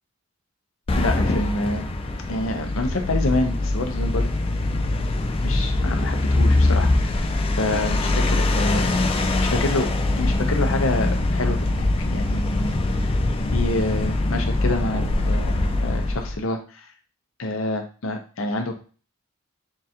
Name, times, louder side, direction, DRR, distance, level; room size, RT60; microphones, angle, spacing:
sound 1, 0.9-16.4, left 2 dB, 25° left, 0.4 m, -22 dB
voice 1, 1.0-1.8 2.3-4.3 5.4-7.2 7.6-9.9 10.1-11.9 12.1-13.2 13.5-16.9 17.4-18.7, left 2 dB, 70° left, 5 dB, 0.7 m, -27 dB
3.7 x 2.5 x 4.2 m, 0.38 s
head